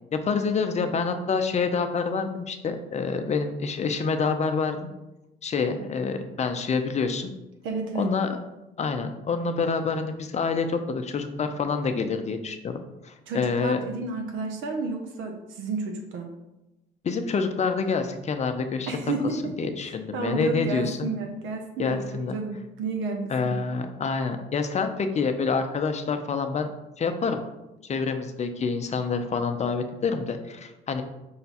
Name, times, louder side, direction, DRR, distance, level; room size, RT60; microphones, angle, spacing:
voice 1, 0.1-4.9 5.4-7.3 7.9-8.4 8.8-12.8 13.0-13.8 17.0-18.9 19.4-21.1 21.8-22.4 23.3-26.7 27.0-27.4 27.9-31.0, left 5 dB, 35° left, 7 dB, 0.5 m, -27 dB
voice 2, 7.6-8.1 13.3-16.3 18.9-19.5 20.1-23.7, right 3 dB, 70° right, 3 dB, 0.7 m, -31 dB
5.6 x 2.2 x 4.1 m, 0.96 s
cardioid pair, 95°, 21 cm